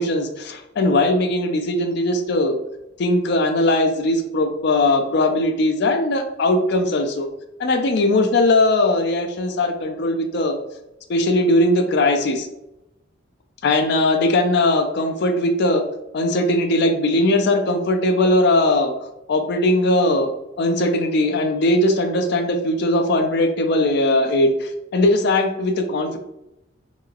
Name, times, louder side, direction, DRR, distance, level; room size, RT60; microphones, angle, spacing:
voice 1, 0.0-2.6 3.0-7.3 7.6-10.6 11.1-12.5 13.6-15.8 16.1-18.9 19.3-20.3 20.6-26.2, left 1 dB, 55° left, 5 dB, 0.4 m, -19 dB
3.0 x 2.8 x 2.3 m, 0.90 s
head